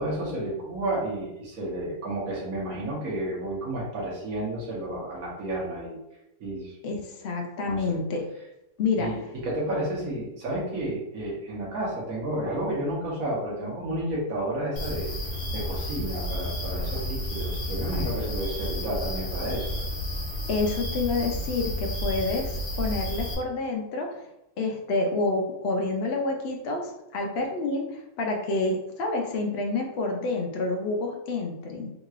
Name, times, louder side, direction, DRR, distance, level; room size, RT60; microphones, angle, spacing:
voice 1, 0.0-6.0 6.4-6.8 7.6-7.8 9.0-9.2 9.4-15.1 15.5-19.7, right 1 dB, 60° right, -5 dB, 1.6 m, -31 dB
voice 2, 6.8-8.2 8.8-9.1 20.5-24.2 24.6-31.9, left 3 dB, 80° left, 1 dB, 0.5 m, -28 dB
sound 1, 14.8-23.3, equal, 35° left, 1.1 m, -31 dB
3.7 x 2.9 x 2.4 m, 0.89 s
omnidirectional pair, 1.7 m